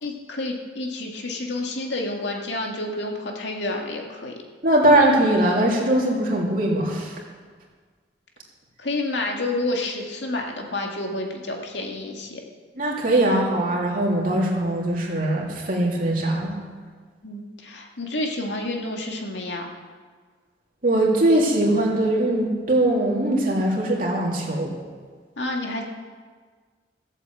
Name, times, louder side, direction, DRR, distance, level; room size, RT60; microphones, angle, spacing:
voice 1, 0.0-4.3 8.8-12.4 17.2-19.7 25.4-25.9, left 2 dB, 85° left, 1 dB, 2.1 m, -29 dB
voice 2, 4.6-7.2 12.7-16.6 20.8-24.7, right 1 dB, 50° right, -2 dB, 3.0 m, -21 dB
16.0 x 8.2 x 7.8 m, 1.6 s
head